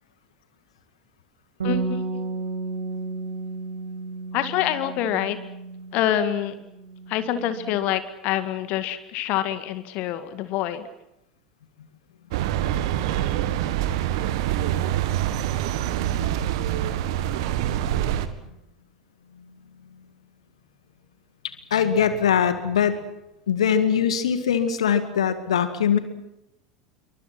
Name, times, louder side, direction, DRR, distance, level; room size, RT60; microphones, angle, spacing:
voice 1, 1.6-2.3 4.3-5.4 5.9-6.6 7.1-10.9, left 11 dB, 45° left, 11 dB, 2.1 m, -26 dB
Bass guitar, 1.6-6.3 6.6-7.9, right 4 dB, 70° right, 5.9 m, -32 dB
sound 1, 12.3-18.3, right 12 dB, 55° right, 1.9 m, -25 dB
voice 2, 21.7-23.0 23.5-26.0, left 8 dB, 65° left, 11 dB, 2.0 m, -21 dB
28.0 x 24.0 x 6.1 m, 0.85 s
figure-of-eight pair, 80°, 3 cm